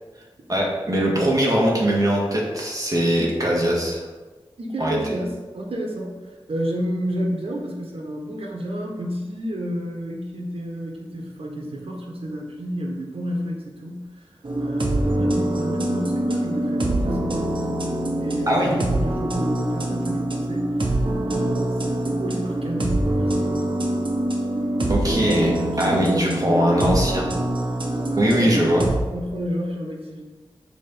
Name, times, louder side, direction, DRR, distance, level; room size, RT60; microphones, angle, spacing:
voice 1, 0.5-4.0 4.8-5.0 18.5-18.8 24.9-27.3 28.2-28.9, equal, 40° right, -3 dB, 2.0 m, -21 dB
voice 2, 4.6-14.3 14.6-17.3 18.1-21.0 21.3-23.7 25.1-27.1 27.9-28.6 29.1-30.2, equal, 85° right, 0 dB, 1.2 m, -30 dB
sound 1, 14.4-28.9, right 1 dB, 60° right, 1.2 m, -24 dB
6.7 x 4.4 x 5.4 m, 1.3 s
wide cardioid pair, 60°, 10 cm